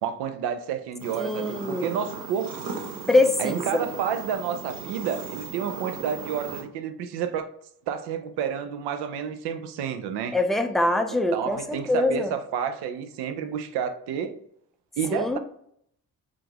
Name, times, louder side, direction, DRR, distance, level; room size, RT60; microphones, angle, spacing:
voice 1, 0.0-2.5 3.4-7.5 7.9-10.4 11.1-14.4 15.0-15.4, right 8 dB, 80° right, 0.5 m, -30 dB
sound 1, 1.0-6.6, right 4 dB, 60° right, 1.0 m, -37 dB
voice 2, 1.2-1.9 3.1-3.6 10.3-11.6 11.9-12.3 15.1-15.4, left 2 dB, ahead, 0.3 m, -23 dB
3.5 x 2.4 x 2.8 m
supercardioid pair, 60°, 39 cm